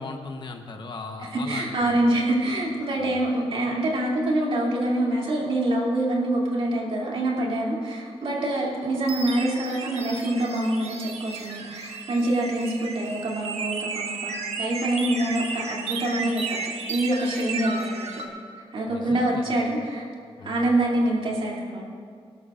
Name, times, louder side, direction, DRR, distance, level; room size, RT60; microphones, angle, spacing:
voice 1, 0.0-2.0 3.0-3.2 18.9-19.5 20.4-20.6, left 3 dB, 45° left, 4 dB, 1.0 m, -38 dB
voice 2, 1.3-16.6 16.9-18.2 18.7-20.0 20.4-21.8, right 1 dB, 60° right, -3 dB, 2.8 m, -25 dB
sound 1, 8.2-18.3, right 4 dB, 80° right, 1.4 m, -34 dB
24.0 x 12.5 x 2.5 m, 2.1 s
wide cardioid pair, 150°, 11 cm